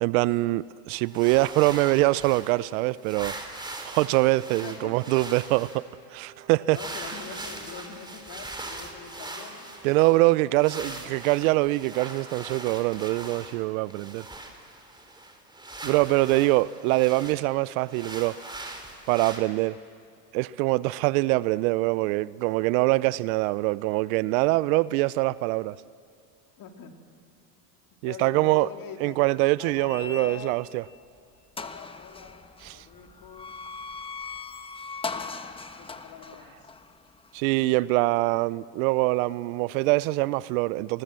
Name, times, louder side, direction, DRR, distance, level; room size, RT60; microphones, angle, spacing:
voice 1, 0.0-3.3 3.9-5.9 6.1-6.8 9.8-14.2 15.8-18.3 19.1-19.8 20.3-25.8 28.0-28.7 29.0-30.8 32.6-32.8 37.3-41.0, right 20 dB, 60° right, 0.6 m, -24 dB
sound 1, 1.0-2.7 3.0-5.8 6.7-10.3 10.6-13.6 13.9-17.4 17.9-19.4, right 2 dB, 10° right, 3.5 m, -41 dB
voice 2, 4.6-5.0 6.7-11.3 15.8-16.6 26.6-26.9 28.0-29.2 29.6-30.6 31.6-32.4 32.7-33.5 35.0-36.7, left 7 dB, 45° left, 3.2 m, -44 dB
Wind instrument woodwind instrument, 5.3-10.4, right 5 dB, 35° right, 6.1 m, -53 dB
sound 2, 29.8-30.8 31.2-31.3 31.6-37.7, left 4 dB, 10° left, 1.1 m, -39 dB
29.0 x 21.0 x 7.6 m
hypercardioid pair, 100°, 48 cm